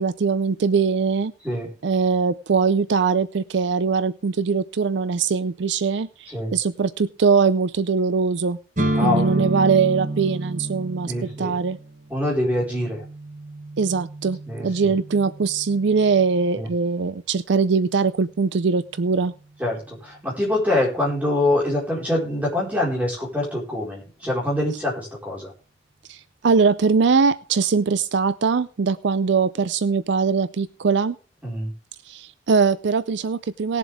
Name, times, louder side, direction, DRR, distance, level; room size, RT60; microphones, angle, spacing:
voice 1, 0.0-1.3 1.8-8.6 9.0-11.1 11.4-11.8 13.8-14.4 14.6-19.3 26.1-31.2 32.1-33.8, right 5 dB, 65° right, 14 dB, 0.4 m, -21 dB
sound 1, 8.8-16.5, right 1 dB, 40° right, 1.2 m, -30 dB
voice 2, 9.0-9.5 11.1-11.5 12.1-13.0 14.5-14.9 16.5-16.7 19.6-25.5 31.4-31.7, left 1 dB, 10° right, -3 dB, 4.7 m, -25 dB
19.0 x 7.4 x 3.6 m, 0.37 s
head